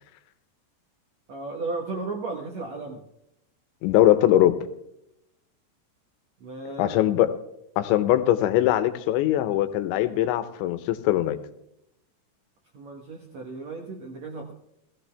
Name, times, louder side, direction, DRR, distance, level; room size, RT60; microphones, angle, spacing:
voice 1, 1.3-3.0 6.4-7.0 12.7-14.5, right 3 dB, 65° right, 1 dB, 1.7 m, -34 dB
voice 2, 3.8-4.6 6.8-7.3 7.8-11.4, left 13 dB, 85° left, 12 dB, 3.2 m, -21 dB
17.0 x 14.5 x 3.4 m, 0.81 s
omnidirectional pair, 5.2 m